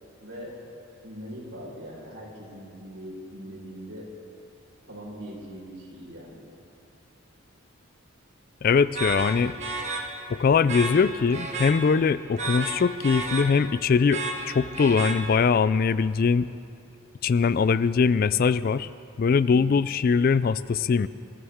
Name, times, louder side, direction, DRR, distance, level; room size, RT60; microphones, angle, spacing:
voice 1, 0.2-0.6 1.0-4.1 4.9-6.4 19.5-19.8, equal, 85° right, -3 dB, 4.4 m, -41 dB
voice 2, 8.6-9.5 10.3-16.5 17.2-18.9 19.2-21.1, left 5 dB, 45° left, 16 dB, 0.3 m, -22 dB
sound 1, 8.9-15.7, right 3 dB, 35° right, 1.2 m, -33 dB
25.0 x 14.5 x 3.6 m, 2.7 s
head